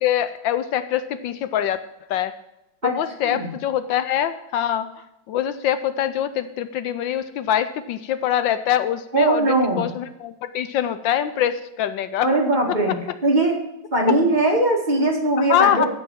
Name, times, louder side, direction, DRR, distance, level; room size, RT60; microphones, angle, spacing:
voice 1, 0.0-1.8 2.1-2.3 2.8-12.3 15.4-15.9, left 10 dB, 75° left, 12 dB, 1.3 m, -24 dB
voice 2, 9.1-9.9 12.2-13.0 13.2-13.6 13.9-15.9, right 2 dB, 25° right, -1 dB, 2.0 m, -20 dB
14.0 x 5.3 x 7.3 m, 0.89 s
omnidirectional pair, 2.1 m